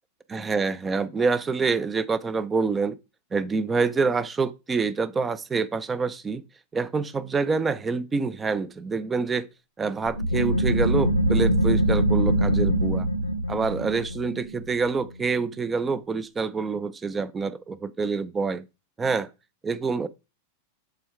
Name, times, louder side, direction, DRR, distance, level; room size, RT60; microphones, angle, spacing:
voice 1, 0.3-3.0 3.3-6.4 6.7-9.5 9.8-13.1 13.5-18.6 19.0-19.3 19.6-20.1, right 4 dB, 15° right, 0.5 m, -26 dB
sound 1, 10.1-15.4, right 1 dB, 90° left, 0.8 m, -23 dB
7.7 x 3.5 x 4.6 m
figure-of-eight pair, 90°, 0 cm